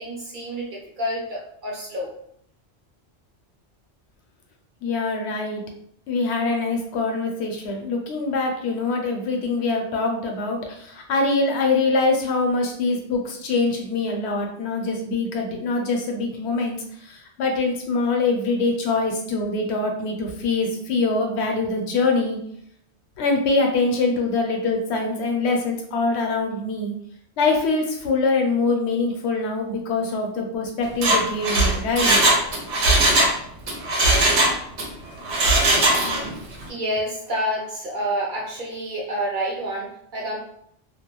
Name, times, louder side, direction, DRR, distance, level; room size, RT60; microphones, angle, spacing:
voice 1, 0.0-2.1 36.7-40.4, equal, 55° right, -2 dB, 0.6 m, -28 dB
voice 2, 4.8-5.6 6.1-22.4 23.2-26.9 27.4-32.2, left 3 dB, 75° left, 2 dB, 0.9 m, -24 dB
Mechanisms, 30.9-33.4 33.7-34.9 35.3-36.3 36.6-36.7, right 2 dB, 80° right, 0.9 m, -19 dB
2.3 x 2.1 x 2.9 m, 0.68 s
omnidirectional pair, 1.2 m